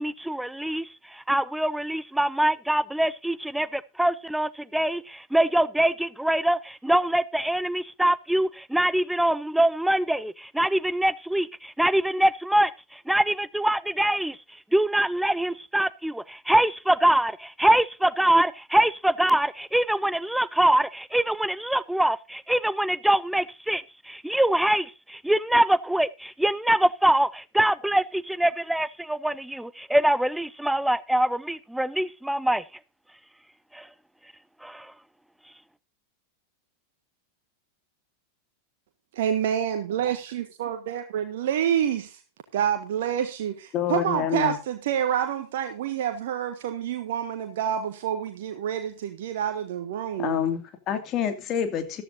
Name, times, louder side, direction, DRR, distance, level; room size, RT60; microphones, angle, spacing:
voice 1, 0.0-14.4 14.7-32.6 33.7-33.9 34.6-34.9, right 1 dB, 5° right, 0.6 m, -24 dB
voice 2, 39.2-42.2 42.5-50.4, right 9 dB, 55° right, 1.4 m, -28 dB
voice 3, 43.7-44.6 50.2-52.0, left 9 dB, 35° left, 2.4 m, -27 dB
14.5 x 13.5 x 2.7 m
figure-of-eight pair, 90°, 0 cm